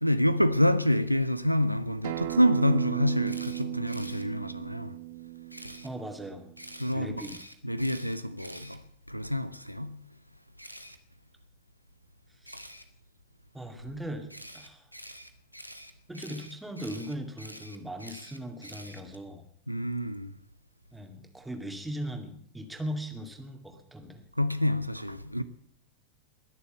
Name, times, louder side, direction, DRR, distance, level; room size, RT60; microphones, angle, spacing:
voice 1, 0.0-4.9 6.8-7.2 7.6-8.8 9.1-10.0 19.7-20.3 24.4-25.4, left 1 dB, 90° right, 0.6 m, -27 dB
Acoustic guitar, 2.0-7.2, right 21 dB, 50° right, 0.6 m, -36 dB
Camera, 3.2-4.2 5.5-5.9 6.6-9.3 10.6-11.0 12.4-12.8 14.3-19.2, equal, 90° left, 1.0 m, -46 dB
voice 2, 5.8-6.5 6.9-7.4 12.4-12.6 13.5-14.3 14.5-14.9 16.1-19.5 20.9-24.2, equal, 5° right, 2.3 m, -39 dB
20.5 x 7.0 x 7.9 m
figure-of-eight pair, 90°, 0 cm